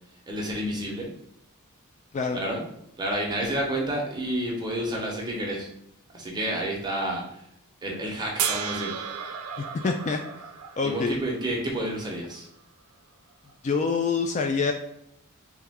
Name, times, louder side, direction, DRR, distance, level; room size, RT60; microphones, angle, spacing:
voice 1, 0.3-1.1 2.3-2.6 3.0-5.7 6.1-7.4 7.8-8.9 10.8-12.5, right 1 dB, 20° right, -2 dB, 0.9 m, -30 dB
sound 1, 8.4-11.6 13.7-13.8, right 7 dB, 75° right, 0.5 m, -33 dB
voice 2, 9.6-10.2 10.8-11.2 13.6-14.7, left 4 dB, 35° left, 5 dB, 0.3 m, -26 dB
3.4 x 3.1 x 3.5 m, 0.78 s
head